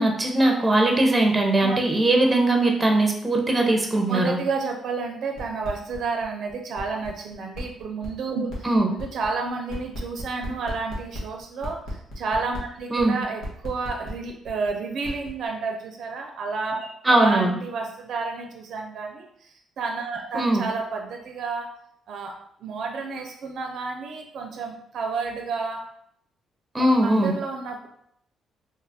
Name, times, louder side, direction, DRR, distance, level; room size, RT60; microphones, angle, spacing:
voice 1, 0.0-4.4 8.6-8.9 12.9-13.1 17.0-17.6 20.3-20.6 26.7-27.3, right 2 dB, 20° right, 2 dB, 0.7 m, -20 dB
voice 2, 4.1-11.8 12.2-19.3 19.8-21.7 22.1-22.3 22.6-25.9 26.8-27.9, right 4 dB, 70° right, 2 dB, 0.5 m, -30 dB
sound 1, 5.4-6.0 6.2-6.3 6.5-14.7 15.0-15.3, left 1 dB, 80° left, 1.1 m, -39 dB
2.8 x 2.4 x 3.5 m, 0.69 s
cardioid pair, 90°, 0 cm